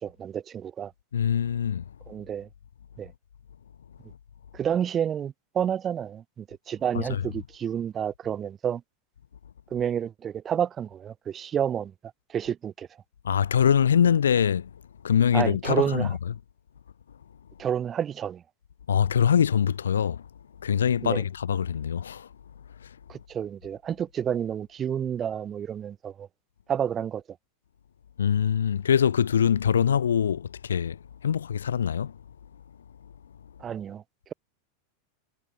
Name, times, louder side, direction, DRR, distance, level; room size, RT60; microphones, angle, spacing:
voice 1, 0.0-0.9 2.1-2.5 3.0-3.1 4.5-8.8 9.7-11.9 12.3-12.9 15.3-16.1 17.6-18.4 21.0-21.2 23.1-26.3 26.7-27.2 33.6-34.0, right 9 dB, 30° right, 3.1 m, -29 dB
voice 2, 1.1-1.8 7.1-7.2 13.2-14.7 15.0-16.1 18.9-20.2 20.6-22.3 28.2-31.0 31.2-32.1, left 8 dB, 75° left, 1.5 m, -23 dB
figure-of-eight pair, 90°, 0 cm